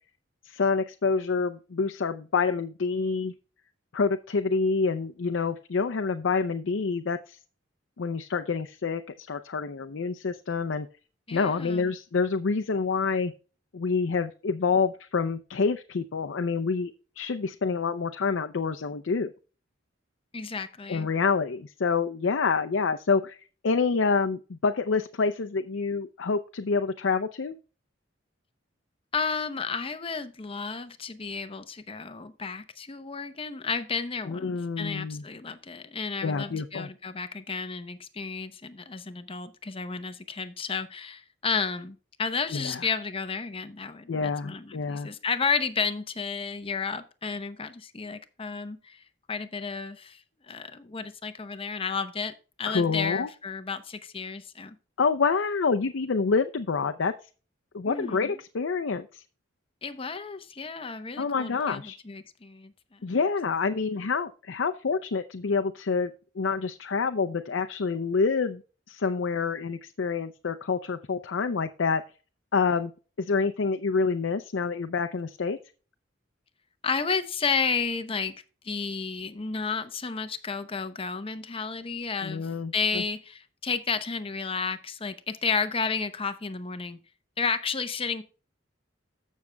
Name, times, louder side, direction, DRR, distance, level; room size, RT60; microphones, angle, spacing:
voice 1, 0.5-3.3 3.9-7.4 8.0-10.9 11.3-13.3 13.7-19.3 20.9-23.4 23.6-27.6 34.3-35.2 36.2-36.9 42.5-42.8 44.1-45.1 52.7-53.3 55.0-57.1 57.7-59.2 61.2-62.0 63.0-68.6 68.9-72.0 72.5-72.9 73.2-75.6 82.2-83.0, left 4 dB, 70° left, 7 dB, 0.5 m, -27 dB
voice 2, 11.3-11.9 20.3-21.1 29.1-52.3 52.6-54.8 57.9-58.4 59.8-63.1 76.8-78.4 78.6-87.0 87.4-88.2, left 5 dB, 30° left, 10 dB, 0.8 m, -32 dB
14.0 x 6.4 x 2.3 m, 0.35 s
head